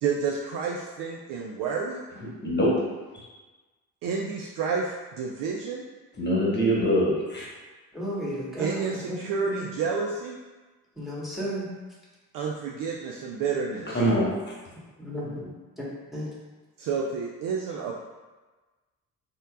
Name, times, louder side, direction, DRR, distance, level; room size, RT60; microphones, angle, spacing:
voice 1, 0.0-2.0 4.0-5.8 8.6-10.4 12.3-14.0 16.8-18.0, right 5 dB, 45° right, -1 dB, 0.5 m, -30 dB
voice 2, 2.4-2.7 3.1-3.2 6.2-7.5 13.9-14.3, equal, 20° left, -5 dB, 1.2 m, -23 dB
voice 3, 7.9-9.2 11.0-11.7 15.0-15.5 15.8-15.9 16.1-16.3, equal, ahead, -6 dB, 1.4 m, -33 dB
4.1 x 2.9 x 2.4 m, 1.2 s
figure-of-eight pair, 50°, 49 cm